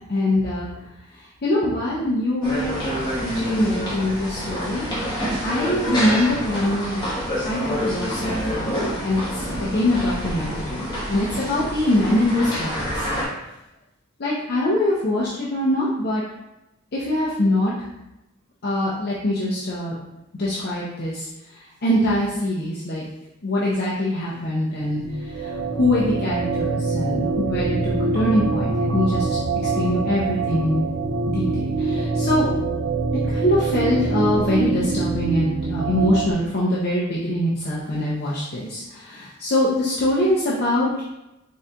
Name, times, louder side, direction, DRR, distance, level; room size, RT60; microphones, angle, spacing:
voice 1, 0.1-0.7 1.4-2.7 3.2-4.9 5.4-7.0 7.4-13.1 14.2-16.2 16.9-17.7 18.6-19.9 20.3-21.3 21.8-23.0 23.4-25.0 25.3-29.4 29.7-30.8 31.3-32.5 33.3-41.0, left 1 dB, 50° left, -7 dB, 0.6 m, -23 dB
sound 1, 2.4-13.3, equal, 20° left, 1.0 m, -27 dB
sound 2, 24.8-36.3, right 3 dB, 60° right, 0.4 m, -24 dB
4.1 x 3.6 x 2.2 m, 0.93 s
head